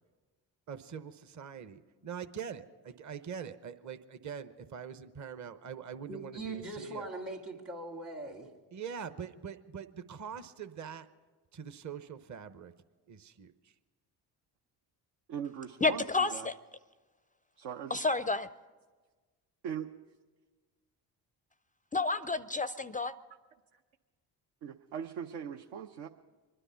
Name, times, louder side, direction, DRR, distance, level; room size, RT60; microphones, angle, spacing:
voice 1, 0.7-7.1 8.7-11.1 11.5-12.7 13.1-13.7, right 7 dB, 40° right, 0.9 m, -43 dB
voice 2, 6.1-8.5, right 2 dB, 85° right, 2.4 m, -41 dB
voice 3, 15.3-16.5 17.6-18.0 19.6-19.9 23.7-23.8 24.6-26.1, right 8 dB, 70° right, 0.8 m, -40 dB
voice 4, 15.8-16.5 17.9-18.5 21.9-23.1, left 3 dB, 20° left, 0.4 m, -30 dB
24.5 x 10.0 x 5.6 m
hypercardioid pair, 55°, 47 cm